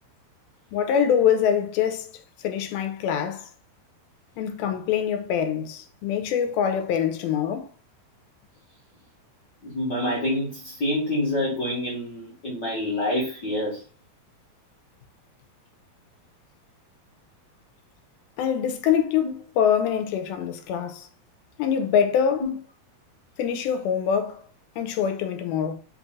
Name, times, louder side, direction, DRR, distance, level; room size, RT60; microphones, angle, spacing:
voice 1, 0.7-2.1 2.4-3.5 4.4-7.7 18.4-21.1 21.6-22.5 23.4-24.4 24.8-25.7, left 8 dB, 85° left, 2.4 m, -24 dB
voice 2, 9.6-13.8 19.2-19.3 22.4-22.5, left 1 dB, 55° left, 1.1 m, -27 dB
5.4 x 4.0 x 2.3 m
omnidirectional pair, 4.3 m